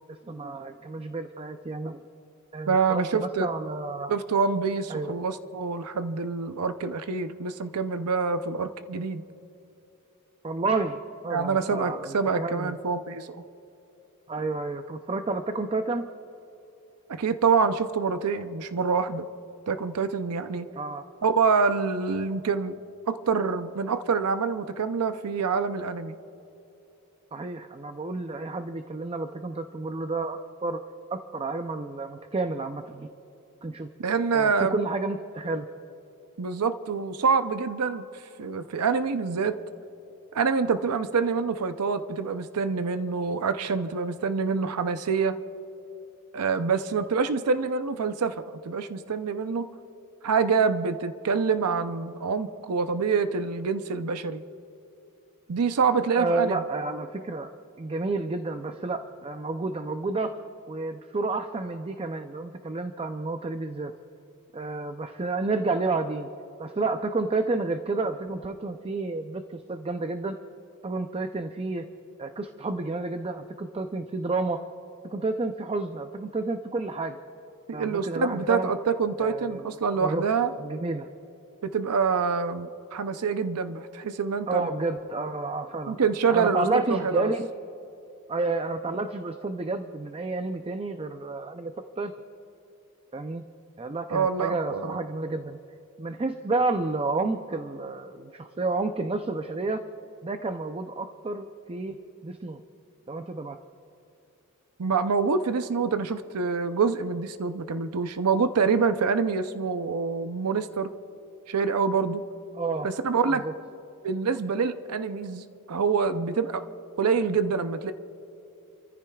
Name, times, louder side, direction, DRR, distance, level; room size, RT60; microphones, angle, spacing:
voice 1, 0.1-2.0 2.5-4.1 4.9-5.1 10.4-12.8 14.3-16.1 20.8-21.1 27.3-30.8 31.1-33.1 33.6-33.9 34.3-35.7 56.2-57.5 57.8-60.4 60.7-63.9 64.5-66.3 66.6-70.4 70.8-71.9 72.2-74.6 75.1-77.2 77.7-78.7 79.2-79.7 80.0-80.2 80.6-81.1 84.5-86.0 86.3-87.5 88.3-92.1 93.1-93.4 93.8-95.6 96.0-99.9 100.2-102.6 103.1-103.6 112.5-112.9 113.3-113.5, right 3 dB, 25° right, 7 dB, 0.5 m, -30 dB
voice 2, 2.7-3.5 4.1-9.2 11.3-13.3 17.1-19.3 19.7-20.7 21.2-22.8 23.1-26.2 34.0-34.8 36.4-39.6 40.3-45.4 46.3-49.7 50.2-54.4 55.5-56.6 77.7-80.5 81.6-84.7 85.9-87.3 94.1-95.0 104.8-110.9 111.5-112.2 112.8-113.4 114.0-116.6 117.0-117.9, right 5 dB, 90° right, 10 dB, 0.6 m, -26 dB
30.0 x 14.5 x 2.3 m, 2.9 s
head